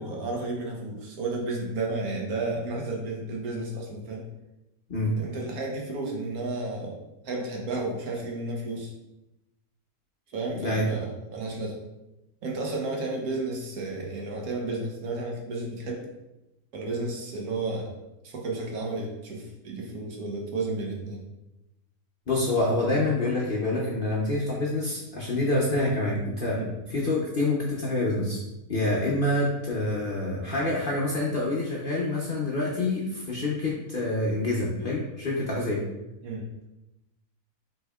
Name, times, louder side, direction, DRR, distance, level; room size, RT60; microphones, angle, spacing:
voice 1, 0.0-4.2 5.2-7.0 7.2-8.9 10.3-11.8 12.4-16.1 16.7-17.9 18.2-21.2 26.5-26.7 29.4-29.5 36.2-36.4, right 2 dB, 70° right, 0 dB, 1.3 m, -32 dB
voice 2, 10.5-11.0 22.3-28.4 28.7-35.8, left 2 dB, 50° left, -4 dB, 0.7 m, -27 dB
5.6 x 3.5 x 2.3 m, 0.95 s
omnidirectional pair, 1.7 m